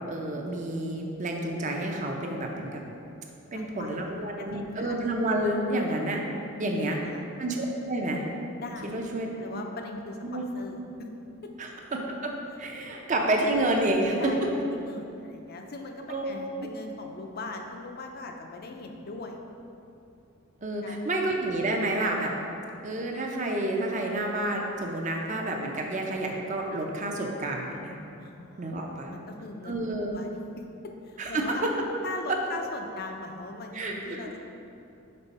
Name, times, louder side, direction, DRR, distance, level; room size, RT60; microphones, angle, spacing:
voice 1, 0.0-2.8 3.5-6.2 6.6-7.0 7.4-8.2 8.8-9.5 10.2-10.4 11.6-12.3 12.6-14.3 16.1-16.2 16.6-16.7 20.6-22.3 22.8-28.0 28.6-29.1 29.6-30.2 31.2-31.7 32.3-32.4 33.7-34.3, right 1 dB, 35° right, 1 dB, 0.6 m, -29 dB
voice 2, 3.5-4.9 6.6-7.2 8.6-9.0 9.4-11.1 11.4-11.5 12.8-12.9 14.2-14.4 14.7-19.4 20.8-21.3 28.2-28.7 29.1-29.8 30.0-30.6 31.0-31.6 32.0-34.4, left 2 dB, 45° left, 3 dB, 0.5 m, -40 dB
5.4 x 4.4 x 4.1 m, 2.7 s
head